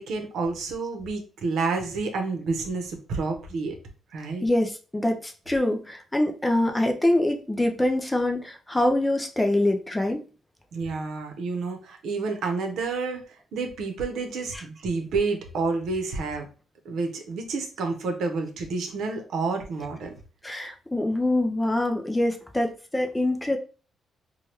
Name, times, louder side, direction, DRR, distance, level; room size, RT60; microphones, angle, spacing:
voice 1, 0.0-3.8 4.1-4.5 10.7-16.5 16.8-20.1, right 4 dB, 75° right, 4 dB, 0.7 m, -29 dB
voice 2, 4.4-10.2 14.5-14.6 20.4-23.6, left 1 dB, 10° left, 4 dB, 0.3 m, -24 dB
3.2 x 2.2 x 2.9 m, 0.36 s
cardioid pair, 165°, 0 cm